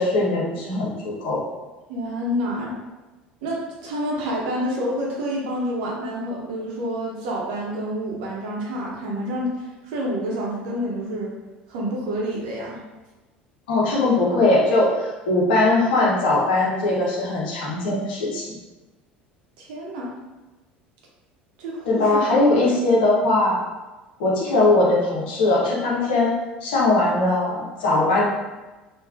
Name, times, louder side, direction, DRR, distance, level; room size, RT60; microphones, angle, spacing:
voice 1, 0.0-1.5 13.7-18.6 21.9-23.6 24.2-28.2, left 2 dB, 65° left, -4 dB, 0.7 m, -20 dB
voice 2, 1.9-2.7 3.4-11.3 11.7-12.8 19.6-20.1 21.6-22.2 22.6-22.7, equal, 60° right, -3 dB, 0.7 m, -28 dB
3.2 x 2.2 x 2.3 m, 1.1 s
figure-of-eight pair, 65°, 6 cm